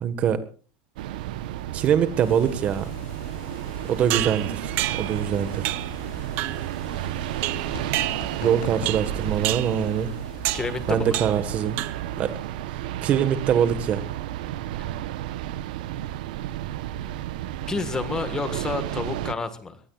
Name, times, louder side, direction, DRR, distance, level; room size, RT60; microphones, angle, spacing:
voice 1, 0.0-0.4 1.7-2.9 3.9-5.7 8.4-10.1 10.9-11.8 12.2-12.3 13.0-14.0, right 8 dB, 30° right, 12 dB, 1.5 m, -23 dB
sound 1, 1.0-19.3, right 13 dB, 80° right, 1.0 m, -32 dB
sound 2, 2.2-12.5, left 5 dB, 50° left, 7.9 m, -41 dB
sound 3, 4.1-5.2 5.6-6.0 6.4-6.7 7.4-8.5 8.9-9.2 9.4-9.8 10.4-10.7 11.1-11.5 11.8-12.2, right 17 dB, 45° right, 0.9 m, -29 dB
voice 2, 10.5-11.2 14.8-14.9 17.7-19.8, left 4 dB, 15° left, 10 dB, 1.6 m, -30 dB
23.5 x 18.5 x 2.4 m, 0.38 s
supercardioid pair, 160°, 4 cm